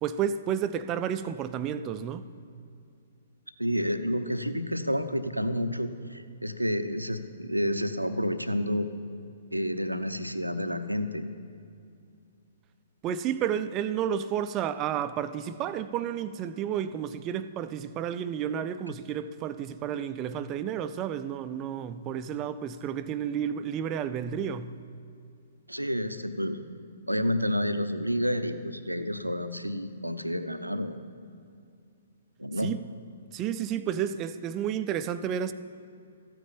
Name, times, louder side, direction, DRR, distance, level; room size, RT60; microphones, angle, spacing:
voice 1, 0.0-2.3 13.0-24.7 32.6-32.8 33.3-35.5, right 9 dB, 25° right, 0.5 m, -31 dB
voice 2, 3.6-8.9 9.5-11.3 25.7-26.6 27.1-31.0 32.4-32.7, equal, 85° right, 0.8 m, -29 dB
14.0 x 9.1 x 8.7 m
figure-of-eight pair, 120°, 0 cm